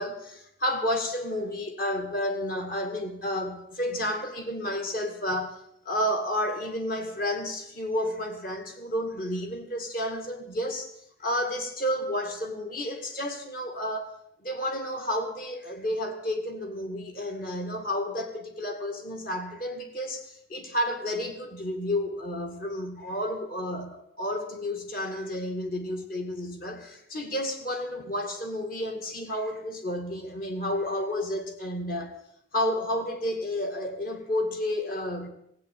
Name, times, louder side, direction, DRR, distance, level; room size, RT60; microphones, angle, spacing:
voice 1, 0.0-5.6 5.9-10.9 11.2-32.2 32.5-35.3, left 1 dB, 45° left, 2.4 m, -31 dB
16.0 x 8.5 x 8.6 m
head